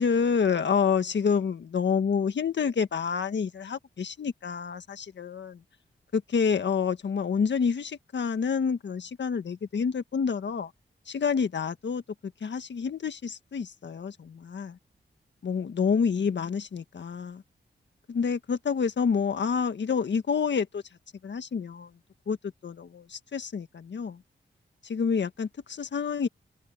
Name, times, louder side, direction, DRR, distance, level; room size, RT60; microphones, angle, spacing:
voice 1, 0.0-5.6 6.1-10.7 11.1-12.0 12.4-14.8 15.4-17.4 18.1-20.8 21.2-21.9 22.3-22.4 22.6-24.2 24.8-26.3, left 6 dB, 75° left, 1.6 m, -28 dB
cardioid pair, 60°, 19 cm